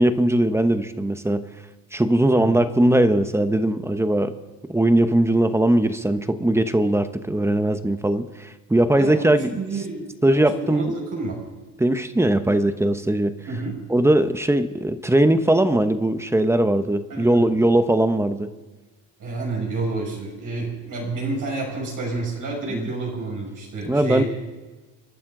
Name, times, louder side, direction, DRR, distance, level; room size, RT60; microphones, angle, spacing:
voice 1, 0.0-1.4 1.9-4.3 4.7-9.5 10.2-10.9 11.8-13.4 13.9-18.5 22.7-22.9 23.9-24.2, right 1 dB, 5° right, 10 dB, 0.9 m, -20 dB
voice 2, 2.3-2.6 8.9-11.4 13.5-13.8 17.1-17.5 19.2-24.3, right 3 dB, 55° right, -2 dB, 6.0 m, -29 dB
30.0 x 12.0 x 3.9 m, 1.3 s
cardioid pair, 125°, 39 cm